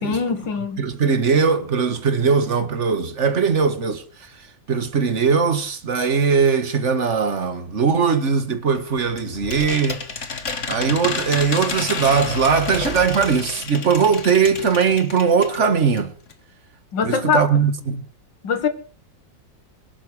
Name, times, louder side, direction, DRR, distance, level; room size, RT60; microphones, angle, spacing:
voice 1, 0.0-0.9 16.9-17.5 18.4-18.7, left 6 dB, 75° left, 2.5 m, -22 dB
voice 2, 0.8-4.0 4.7-10.2 10.7-16.1 17.0-18.0, right 6 dB, 40° right, 1.8 m, -20 dB
sound 1, 8.7-15.6 16.0-16.1 16.3-16.4, left 5 dB, 45° left, 1.7 m, -30 dB
22.0 x 11.0 x 5.0 m
omnidirectional pair, 2.0 m